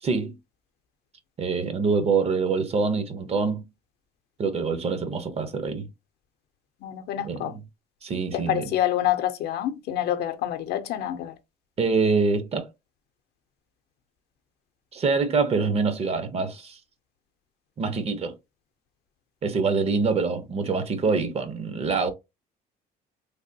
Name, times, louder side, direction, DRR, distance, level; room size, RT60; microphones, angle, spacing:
voice 1, 0.0-0.4 1.4-3.7 4.4-5.9 7.2-7.6 8.0-8.7 11.8-12.7 14.9-16.8 17.8-18.3 19.4-22.1, right 4 dB, 35° right, 0.6 m, -25 dB
voice 2, 6.8-7.5 8.3-11.3, left 12 dB, 75° left, 0.6 m, -27 dB
3.3 x 2.2 x 2.6 m
cardioid pair, 110°, 17 cm